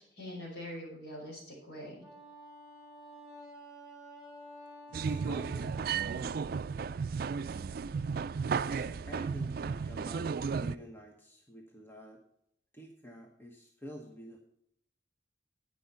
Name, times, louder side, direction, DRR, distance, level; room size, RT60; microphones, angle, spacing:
voice 1, 0.0-2.0 8.7-8.8, equal, 85° left, -4 dB, 5.3 m, -44 dB
Wind instrument woodwind instrument, 2.0-6.2, right 1 dB, 5° right, 3.0 m, -51 dB
voice 2, 4.9-6.7 8.8-12.2 12.7-14.4, equal, 15° left, 2 dB, 1.0 m, -49 dB
sound 1, 4.9-10.8, right 5 dB, 55° right, 0.4 m, -34 dB
10.0 x 9.3 x 5.5 m, 0.74 s
head